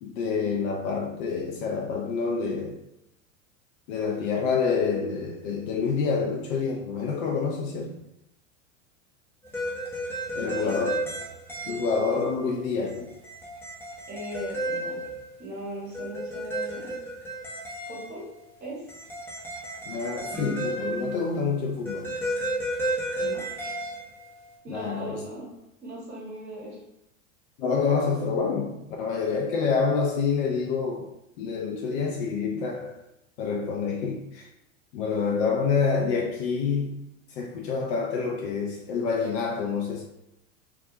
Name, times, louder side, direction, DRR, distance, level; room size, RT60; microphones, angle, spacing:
voice 1, 0.0-2.8 3.9-7.9 10.3-10.9 11.6-13.1 19.9-22.1 24.7-25.2 27.6-31.1 31.4-33.0 33.4-34.5 34.9-37.0 37.3-40.0, left 5 dB, 65° left, 0 dB, 0.5 m, -27 dB
sound 1, 9.4-12.3 12.8-15.6 15.9-18.4 18.9-21.6 21.9-24.5, right 1 dB, 5° left, 0.4 m, -33 dB
voice 2, 10.4-10.8 14.1-15.0 15.4-17.0 17.8-18.9 23.2-23.7 24.6-25.5 25.8-26.8, right 1 dB, 20° right, -6 dB, 1.0 m, -39 dB
2.3 x 2.1 x 2.7 m, 0.84 s
hypercardioid pair, 105°, 39 cm